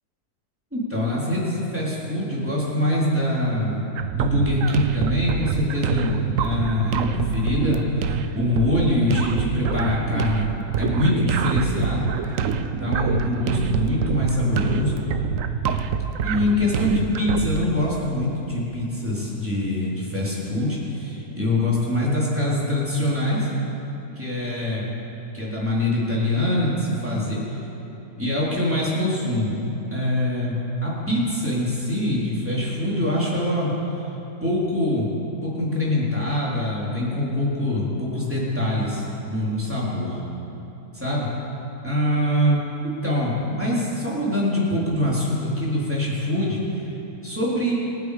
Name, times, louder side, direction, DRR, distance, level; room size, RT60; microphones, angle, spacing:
voice 1, 0.7-3.7 4.1-10.5 10.8-12.0 12.7-14.9 16.2-23.5 24.2-24.9 25.3-27.4 28.2-30.5 30.8-33.7 34.4-35.1 35.4-40.2 40.9-41.3 41.8-46.9 47.2-47.7, left 1 dB, 10° right, -7 dB, 3.6 m, -24 dB
sound 1, 4.0-17.7, right 7 dB, 65° right, 1.0 m, -26 dB
26.5 x 9.4 x 5.1 m, 3.0 s
omnidirectional pair, 1.6 m